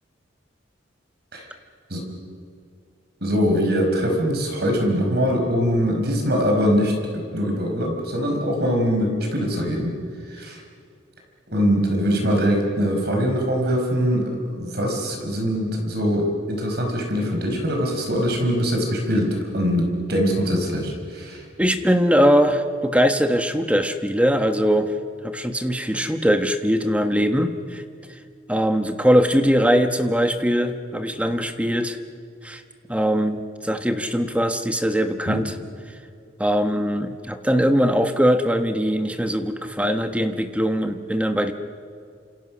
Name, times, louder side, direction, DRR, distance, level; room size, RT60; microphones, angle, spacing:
voice 1, 3.2-10.0 10.3-10.6 11.5-21.4 35.3-35.4, equal, 55° right, 2 dB, 5.4 m, -22 dB
voice 2, 21.6-25.0 25.2-27.8 28.1-28.2 28.5-32.0 32.4-32.6 32.9-35.6 35.9-36.0 36.4-41.5, equal, 5° right, 7 dB, 1.3 m, -21 dB
28.5 x 27.0 x 6.4 m, 2.3 s
head